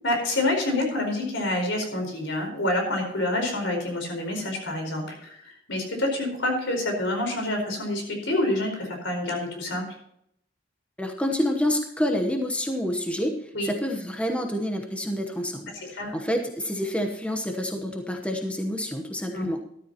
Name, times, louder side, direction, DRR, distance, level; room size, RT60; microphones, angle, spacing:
voice 1, 0.0-9.8 13.5-13.7 15.8-16.1 19.3-19.6, left 1 dB, 75° left, 3 dB, 4.6 m, -27 dB
voice 2, 11.0-19.6, equal, 5° left, 4 dB, 1.0 m, -28 dB
13.5 x 12.5 x 2.9 m, 0.72 s
head